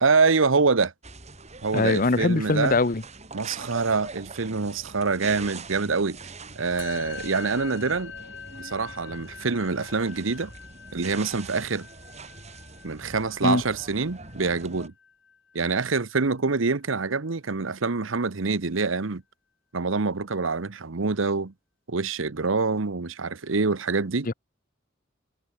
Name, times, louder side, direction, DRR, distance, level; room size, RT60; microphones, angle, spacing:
voice 1, 0.0-0.9 1.6-2.8 3.3-6.2 6.5-8.1 8.6-10.5 10.9-11.9 12.8-14.9 15.5-19.2 19.7-21.5 21.9-24.3, right 4 dB, 90° right, 1.0 m, -25 dB
sound 1, 1.0-14.9, right 3 dB, 35° right, 6.0 m, -43 dB
voice 2, 1.7-3.0 13.4-13.6 24.3-24.4, left 3 dB, 45° left, 0.9 m, -22 dB
Musical instrument, 6.8-16.3, left 6 dB, 65° left, 5.1 m, -44 dB
head